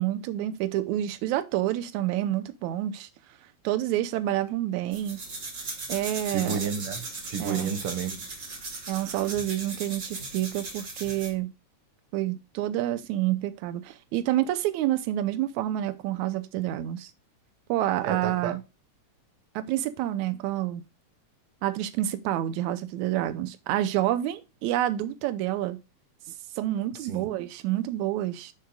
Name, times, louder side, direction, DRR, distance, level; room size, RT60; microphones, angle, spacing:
voice 1, 0.0-3.1 3.6-5.2 5.9-6.6 7.4-7.7 8.9-11.5 12.1-17.1 17.7-18.6 19.6-20.8 21.6-25.8 26.3-28.5, right 13 dB, 90° right, 2.0 m, -28 dB
sound 1, 4.9-11.4, right 3 dB, 35° right, 2.9 m, -38 dB
voice 2, 6.3-8.2 18.0-18.6 27.0-27.3, right 7 dB, 55° right, 2.2 m, -31 dB
11.5 x 6.7 x 2.3 m
omnidirectional pair, 3.3 m